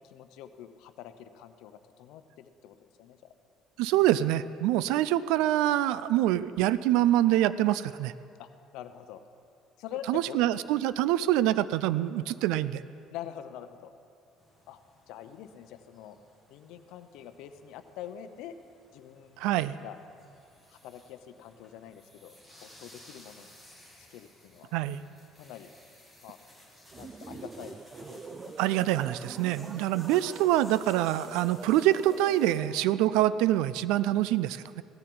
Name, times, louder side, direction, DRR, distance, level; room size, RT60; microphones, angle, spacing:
voice 1, 0.0-3.2 8.4-9.2 9.8-10.4 13.1-13.9 14.7-14.8 15.1-16.2 16.5-18.5 18.9-20.0 20.7-22.3 22.6-23.6 24.1-24.7 25.4-25.7 26.2-26.4 27.0-27.8 28.1-28.5, left 10 dB, 75° left, 10 dB, 0.7 m, -45 dB
voice 2, 3.8-8.1 10.1-12.8 19.4-19.8 24.7-25.0 28.6-34.8, right 13 dB, 85° right, 16 dB, 0.4 m, -25 dB
sound 1, 14.4-32.6, left 1 dB, 10° right, 2.7 m, -57 dB
sound 2, 26.9-33.4, right 4 dB, 25° right, 0.4 m, -45 dB
17.0 x 14.0 x 3.9 m, 2.5 s
cardioid pair, 130°, 0 cm